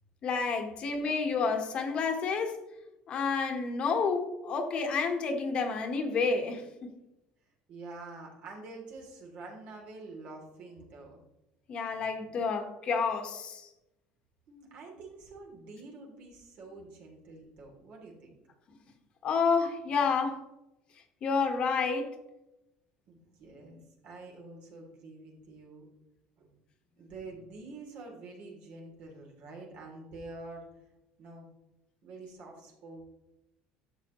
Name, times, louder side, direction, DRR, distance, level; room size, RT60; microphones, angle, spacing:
voice 1, 0.2-2.6 3.1-6.9 11.7-13.7 19.2-20.4 21.2-22.1, left 5 dB, 40° left, 5 dB, 1.3 m, -29 dB
voice 2, 7.7-11.2 14.5-18.4 23.1-25.8 26.4-26.5 27.0-30.6 31.2-31.5 32.0-33.0, right 3 dB, 60° right, 0 dB, 3.1 m, -47 dB
12.0 x 7.5 x 3.1 m, 0.93 s
cardioid pair, 140°, 3 cm